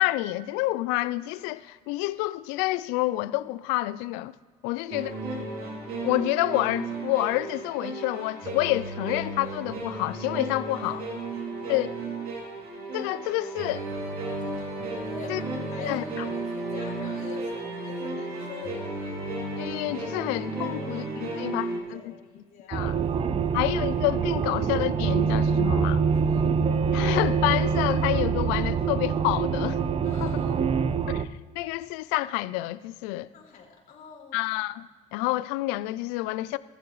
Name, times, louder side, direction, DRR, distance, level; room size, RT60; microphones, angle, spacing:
voice 1, 0.0-4.3 4.6-5.1 6.0-11.0 11.7-11.9 12.9-13.8 15.3-15.4 15.8-16.2 19.6-22.1 22.7-23.0 23.5-26.0 26.9-29.8 30.2-30.3 31.1-31.3 31.6-33.3 34.3-34.9 35.1-36.6, left 18 dB, 85° left, 0.4 m, -28 dB
voice 2, 4.7-5.2 10.8-11.9 15.1-19.1 20.7-23.6 24.6-24.7 26.0-26.5 30.0-30.6 33.3-34.4, left 5 dB, 55° left, 3.8 m, -46 dB
sound 1, 4.9-21.8, right 2 dB, 65° right, 2.8 m, -34 dB
sound 2, 22.7-31.3, right 6 dB, 35° right, 0.6 m, -25 dB
15.0 x 11.0 x 3.2 m
supercardioid pair, 80°, 17 cm